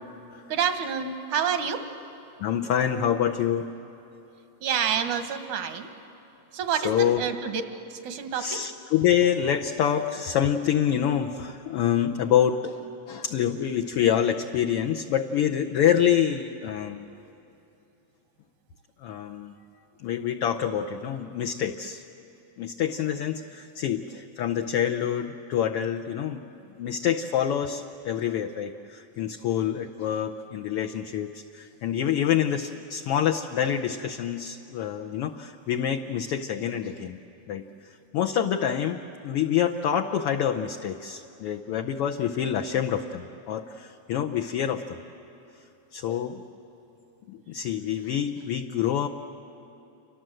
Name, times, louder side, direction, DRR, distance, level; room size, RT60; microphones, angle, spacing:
voice 1, 0.5-1.9 4.6-5.9 6.5-7.6 7.9-8.6, right 7 dB, 80° right, 8 dB, 2.7 m, -28 dB
voice 2, 2.4-3.7 6.7-7.2 8.3-17.1 19.0-19.5 20.0-22.0 22.6-26.5 26.8-37.2 37.5-45.0 45.9-46.4 47.3-49.1, left 9 dB, 70° left, 3 dB, 1.4 m, -26 dB
29.0 x 24.5 x 7.8 m, 2.9 s
omnidirectional pair, 3.3 m